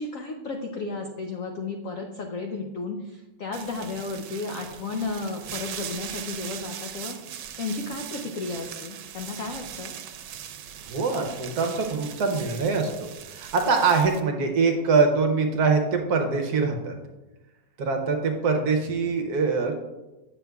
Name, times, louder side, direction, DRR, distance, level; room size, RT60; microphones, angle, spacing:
voice 1, 0.0-7.2 7.6-9.9, left 3 dB, 80° left, 2 dB, 0.7 m, -33 dB
sound 1, 3.5-14.2, right 9 dB, 85° right, 1.4 m, -40 dB
voice 2, 10.9-12.9 13.3-16.9 17.8-19.7, right 4 dB, 65° right, 3 dB, 1.1 m, -23 dB
9.0 x 6.5 x 2.3 m, 1.1 s
omnidirectional pair, 2.1 m